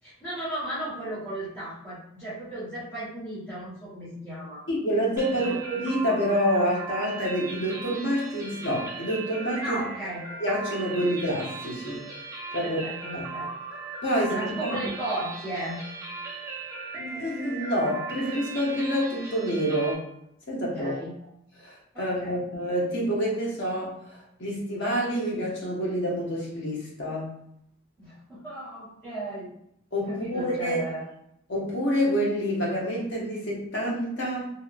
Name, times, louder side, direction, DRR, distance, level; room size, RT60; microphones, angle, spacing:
voice 1, 0.0-4.7 5.4-5.6 9.6-10.2 12.6-13.5 14.3-15.8 20.7-21.2 21.9-22.5 28.0-29.5 30.1-31.1, right 1 dB, 10° left, -15 dB, 1.4 m, -35 dB
voice 2, 4.7-9.8 10.4-12.0 12.5-12.8 13.1-13.2 14.0-14.8 16.9-20.0 20.5-20.9 21.6-27.3 29.9-30.8 31.5-34.5, equal, 60° left, -3 dB, 1.0 m, -27 dB
sound 1, 5.2-19.9, right 4 dB, 15° right, 0.5 m, -38 dB
2.9 x 2.7 x 2.5 m, 0.74 s
head